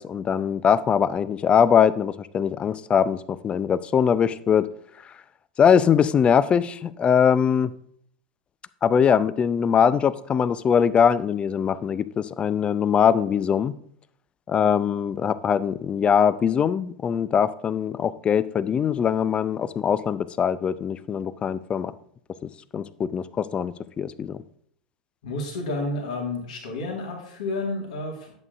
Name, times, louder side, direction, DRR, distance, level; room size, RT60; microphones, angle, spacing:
voice 1, 0.0-4.7 5.6-7.7 8.8-13.7 14.5-21.9 22.7-24.4, left 7 dB, 25° left, 17 dB, 0.4 m, -22 dB
voice 2, 25.2-28.3, left 2 dB, 65° left, 0 dB, 1.8 m, -30 dB
10.5 x 8.1 x 2.5 m, 0.65 s
figure-of-eight pair, 85°, 4 cm